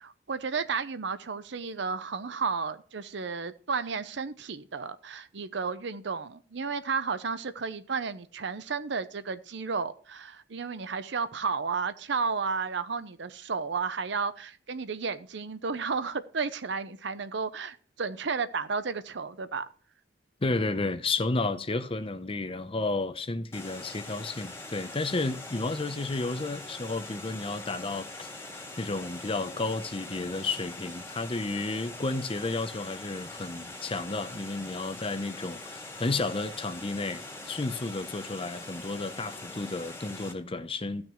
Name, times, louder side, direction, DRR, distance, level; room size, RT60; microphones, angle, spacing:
voice 1, 0.0-19.7, right 5 dB, 65° right, 0.7 m, -33 dB
voice 2, 20.4-28.3 28.8-41.0, left 3 dB, 30° left, 0.7 m, -32 dB
Water, 23.5-40.3, left 2 dB, 15° left, 1.9 m, -43 dB
15.5 x 6.1 x 3.1 m
head